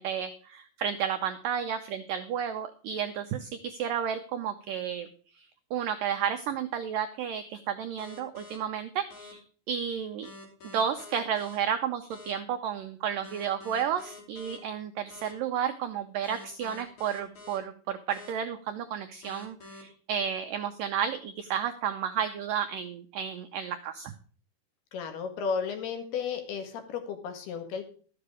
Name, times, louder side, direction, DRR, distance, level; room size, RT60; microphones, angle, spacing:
voice 1, 0.0-5.1 5.4-9.4 9.7-10.3 10.7-24.1, right 8 dB, 90° right, 7 dB, 1.9 m, -32 dB
sound 1, 8.0-8.6 9.1-9.3 10.2-11.6 12.1-12.3 13.2-14.6 15.1-15.3 16.2-17.6 18.1-18.3 19.2-19.8, left 3 dB, 45° left, 4.5 m, -47 dB
voice 2, 24.9-27.8, left 6 dB, 70° left, 5 dB, 3.7 m, -33 dB
13.0 x 7.9 x 4.8 m, 0.42 s
omnidirectional pair, 4.9 m